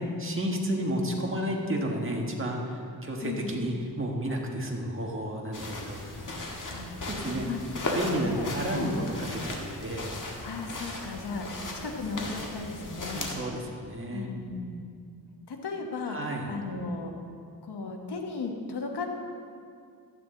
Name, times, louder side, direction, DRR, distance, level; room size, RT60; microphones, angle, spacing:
voice 1, 0.0-6.1 7.0-7.5 7.9-10.1 13.1-14.3 16.1-16.5, equal, 30° right, 0 dB, 1.6 m, -32 dB
voice 2, 3.2-3.6 6.7-7.0 7.4-7.6 8.1-8.4 8.7-9.0 10.4-11.5 11.8-13.2 14.1-14.9 15.5-16.2 16.5-17.1 17.6-19.1, left 4 dB, 85° left, 2 dB, 1.3 m, -36 dB
sound 1, 5.5-13.3, left 2 dB, 50° left, 1.7 m, -36 dB
12.0 x 9.0 x 3.8 m, 2.3 s
cardioid pair, 60°, 39 cm